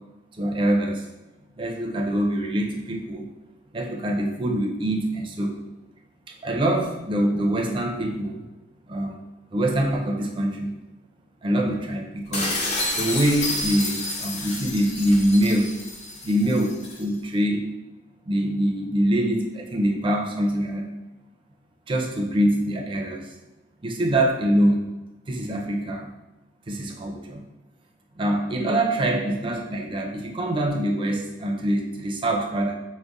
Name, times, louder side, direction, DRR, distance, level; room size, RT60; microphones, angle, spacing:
voice 1, 0.4-1.0 1.6-3.3 3.7-5.6 6.4-8.4 8.9-9.1 9.5-10.7 11.4-12.6 13.0-15.7 16.2-17.7 18.3-20.9 21.9-23.3 23.8-24.8 25.3-26.1 26.7-27.4 28.2-32.8, right 1 dB, 30° right, 1 dB, 0.4 m, -24 dB
dishes dropped onto hard stone floor, 12.3-17.0, left 2 dB, 40° left, 0.6 m, -30 dB
5.1 x 2.1 x 2.3 m, 1.0 s
head